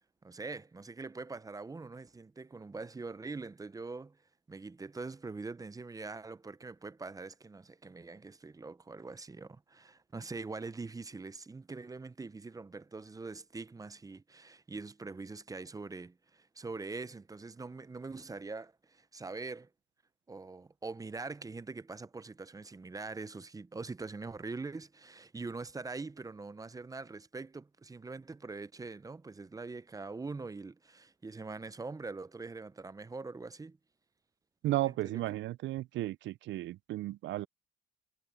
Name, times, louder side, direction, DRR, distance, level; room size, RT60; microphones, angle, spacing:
voice 1, 0.2-4.2 4.5-19.7 20.3-33.8 34.8-35.2, right 3 dB, 15° right, 0.5 m, -43 dB
voice 2, 34.6-37.5, right 16 dB, 70° right, 0.4 m, -34 dB
cardioid pair, 90°, 20 cm